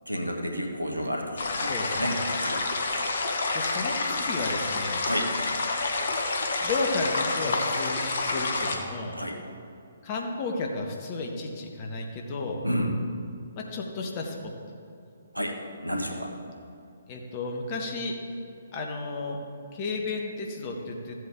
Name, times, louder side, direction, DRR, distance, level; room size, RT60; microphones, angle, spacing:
voice 1, 0.1-1.7 2.0-2.6 5.0-5.3 9.1-9.4 12.6-12.9 15.3-15.6 15.8-16.3, equal, 90° right, 2 dB, 1.4 m, -30 dB
sound 1, 1.4-8.8, left 3 dB, 50° left, 1.2 m, -28 dB
voice 2, 1.7-2.2 3.5-5.0 6.6-9.2 10.0-12.6 13.6-14.4 17.1-18.1 18.7-19.4 19.7-21.1, left 3 dB, 30° left, 1 dB, 1.3 m, -33 dB
14.5 x 7.9 x 3.6 m, 2.6 s
figure-of-eight pair, 130°, 0 cm